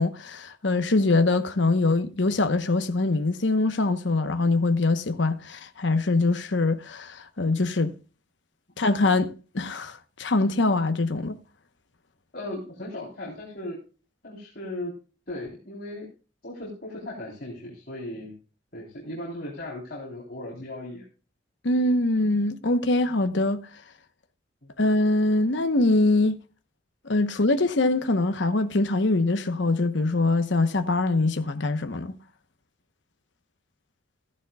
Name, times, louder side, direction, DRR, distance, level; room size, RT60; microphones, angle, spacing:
voice 1, 0.0-7.9 8.8-11.4 21.6-23.6 24.8-26.4 27.1-32.1, left 2 dB, 75° left, 1.0 m, -23 dB
voice 2, 12.3-13.8 14.2-14.9 15.3-16.1 16.4-18.3 18.7-21.1 24.6-24.7, left 1 dB, 50° left, 3.8 m, -37 dB
15.0 x 11.0 x 2.3 m
head